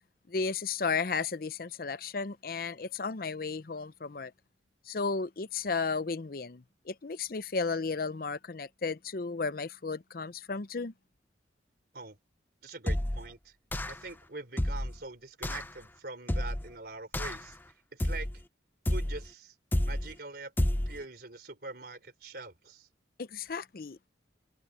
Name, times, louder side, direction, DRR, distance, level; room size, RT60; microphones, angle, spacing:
voice 1, 0.3-4.3 4.9-10.9 23.2-24.1, left 4 dB, 50° left, 0.6 m, -34 dB
voice 2, 12.6-13.5 13.9-17.6 17.9-18.3 18.9-19.5 19.8-20.5 20.9-22.9, right 3 dB, 55° right, 4.4 m, -44 dB
sound 1, 12.9-13.3 13.7-14.1 14.6-15.0 15.4-15.7 16.3-16.7 17.1-17.5 18.0-18.4 18.9-19.3 19.7-20.1 20.6-21.0, left 1 dB, 10° left, 0.6 m, -30 dB
head